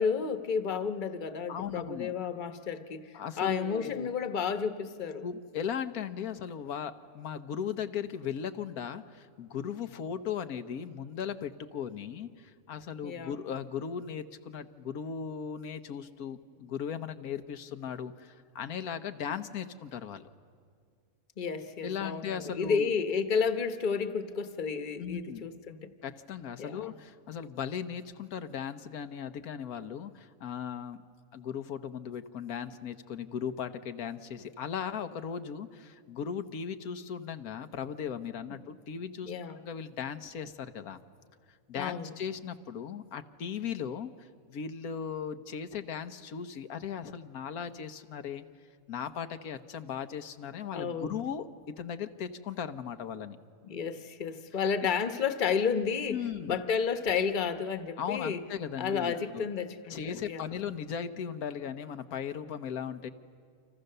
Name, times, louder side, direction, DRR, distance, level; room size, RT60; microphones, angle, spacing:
voice 1, 0.0-5.2 13.0-13.4 21.4-25.9 26.6-26.9 39.2-39.6 41.8-42.1 50.7-51.2 53.6-56.2 56.5-58.4 58.8-60.6, left 6 dB, 35° left, 9 dB, 1.1 m, -31 dB
voice 2, 1.5-2.1 3.1-4.1 5.2-20.3 21.8-22.9 25.0-25.5 26.0-31.0 31.3-39.3 39.6-41.0 41.7-44.1 44.5-48.4 48.9-51.5 51.8-53.4 56.1-56.6 58.0-59.4 59.9-63.1, left 7 dB, 90° left, 9 dB, 1.4 m, -37 dB
29.5 x 26.5 x 6.7 m, 2.2 s
omnidirectional pair, 1.5 m